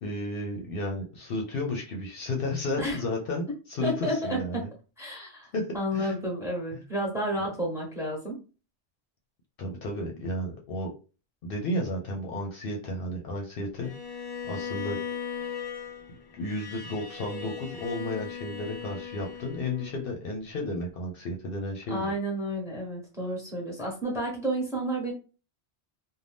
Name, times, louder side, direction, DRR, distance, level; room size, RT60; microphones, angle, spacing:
voice 1, 0.0-4.7 5.5-5.7 5.9-6.2 6.7-6.8 9.6-10.9 11.4-15.0 16.3-22.1, left 1 dB, 65° left, 0 dB, 0.8 m, -33 dB
voice 2, 3.8-4.4 5.0-5.5 5.7-8.4 21.9-25.1, equal, 5° right, -2 dB, 1.0 m, -31 dB
Bowed string instrument, 13.8-20.0, left 7 dB, 35° left, 0.3 m, -38 dB
2.6 x 2.2 x 3.4 m, 0.34 s
omnidirectional pair, 1.1 m